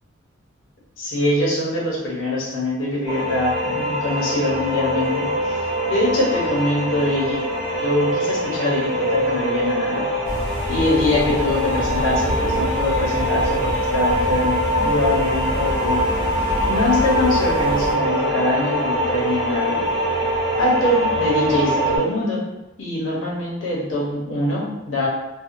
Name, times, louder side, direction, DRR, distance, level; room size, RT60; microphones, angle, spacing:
voice 1, 1.0-5.4 5.9-7.4 7.8-10.1 10.7-16.1 16.7-19.9 20.6-22.4 22.8-25.1, left 1 dB, 85° left, -5 dB, 0.9 m, -23 dB
sound 1, 3.1-22.0, equal, ahead, 1.2 m, -23 dB
sound 2, 10.3-17.9, equal, 45° left, 0.6 m, -28 dB
2.7 x 2.2 x 2.5 m, 0.99 s
head